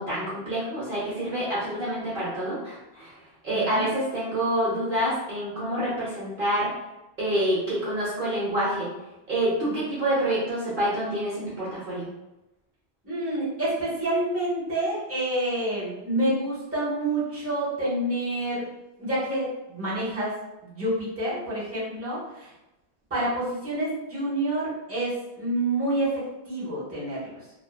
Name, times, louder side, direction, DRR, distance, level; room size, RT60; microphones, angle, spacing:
voice 1, 0.0-3.1 3.4-6.7 7.2-8.9 9.3-12.1, right 1 dB, 55° right, -8 dB, 0.8 m, -27 dB
voice 2, 3.5-3.8 9.6-9.7 13.0-18.6 19.0-20.3 20.6-22.5 23.1-27.4, right 1 dB, 15° right, -9 dB, 0.9 m, -28 dB
2.6 x 2.1 x 2.4 m, 0.97 s
omnidirectional pair, 1.1 m